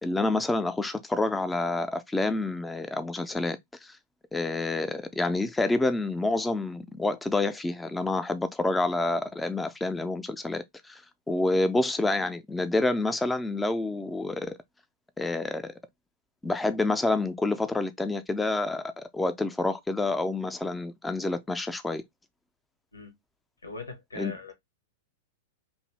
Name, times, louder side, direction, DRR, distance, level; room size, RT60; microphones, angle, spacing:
voice 1, 0.0-4.0 4.3-11.0 11.3-14.6 15.2-15.7 16.4-22.0 24.2-24.3, left 2 dB, 10° left, 0.4 m, -28 dB
voice 2, 23.6-24.5, left 3 dB, 80° left, 0.9 m, -40 dB
2.6 x 2.6 x 3.1 m
figure-of-eight pair, 100°, 0 cm